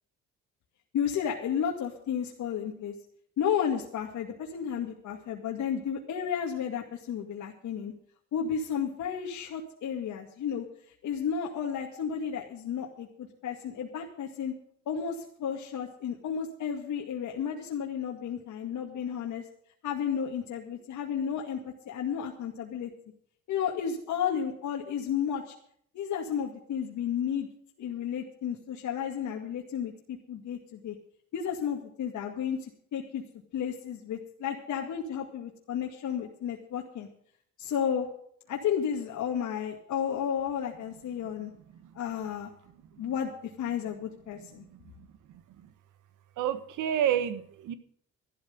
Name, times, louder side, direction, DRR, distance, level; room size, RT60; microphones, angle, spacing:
voice 1, 0.9-2.9 3.4-7.9 8.3-10.7 11.0-14.5 14.9-19.4 19.8-22.9 23.5-25.5 25.9-27.5 27.8-31.0 31.3-33.2 33.5-37.1 37.6-38.1 38.5-41.5 41.9-42.5 43.0-44.6, left 8 dB, 75° left, 0 dB, 2.1 m, -32 dB
voice 2, 46.4-47.7, right 10 dB, 85° right, 12 dB, 1.5 m, -28 dB
14.0 x 12.5 x 5.3 m, 0.64 s
cardioid pair, 90°, 30 cm